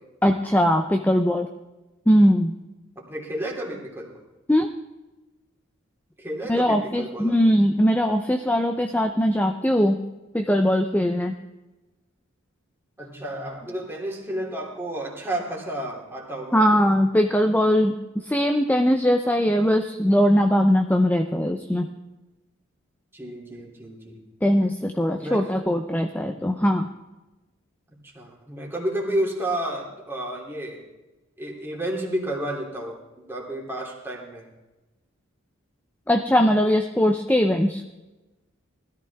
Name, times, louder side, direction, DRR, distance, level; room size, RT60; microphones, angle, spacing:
voice 1, 0.2-1.5 2.1-2.5 4.5-4.7 6.5-10.0 10.3-11.3 16.5-21.9 24.4-26.9 36.1-37.8, equal, 10° left, 5 dB, 0.6 m, -20 dB
voice 2, 3.0-4.1 6.2-7.4 13.0-16.9 23.1-24.2 25.2-25.4 26.2-26.4 28.0-30.8 31.4-33.0 33.3-34.5, right 1 dB, 10° right, -2 dB, 2.9 m, -31 dB
20.0 x 14.0 x 3.5 m, 1.1 s
head